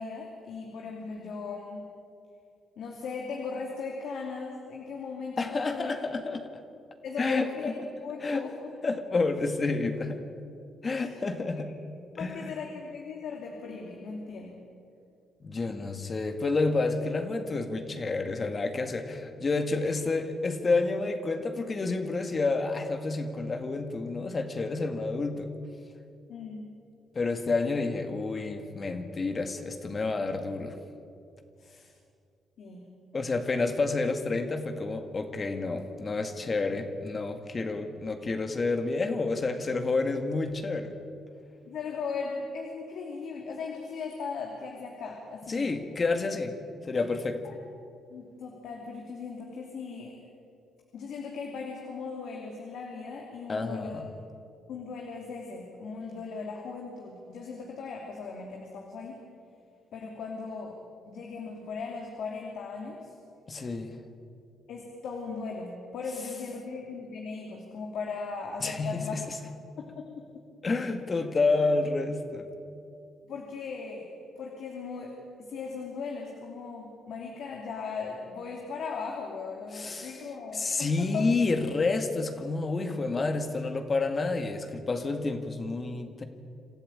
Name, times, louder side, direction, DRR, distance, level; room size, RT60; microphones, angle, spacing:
voice 1, 0.0-1.9 2.8-6.2 7.0-7.7 8.0-8.7 10.9-11.1 12.2-14.6 19.8-19.9 26.3-26.7 31.6-31.9 32.6-32.8 41.7-45.6 47.5-47.6 48.1-50.2 50.9-54.0 54.7-59.2 59.9-60.8 61.1-63.1 64.7-69.2 69.8-70.2 73.3-74.1 74.4-81.3, left 4 dB, 70° left, 0 dB, 2.9 m, -38 dB
voice 2, 5.4-6.5 7.2-7.7 8.2-8.4 8.8-10.2 10.8-11.7 12.1-12.6 15.4-25.5 27.1-30.8 33.1-41.0 45.5-46.6 46.8-47.4 53.5-54.1 63.5-64.0 68.6-69.4 70.6-72.5 79.7-80.2 80.5-86.2, left 3 dB, 35° left, 7 dB, 2.0 m, -29 dB
26.5 x 13.5 x 8.9 m, 2.5 s
cardioid pair, 90°, 0 cm